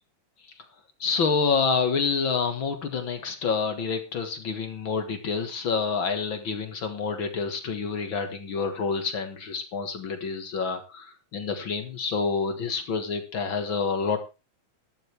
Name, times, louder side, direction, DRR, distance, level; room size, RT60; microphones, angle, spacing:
voice 1, 1.0-14.2, left 5 dB, 45° left, 7 dB, 2.0 m, -28 dB
14.0 x 13.0 x 3.4 m, 0.29 s
omnidirectional pair, 3.4 m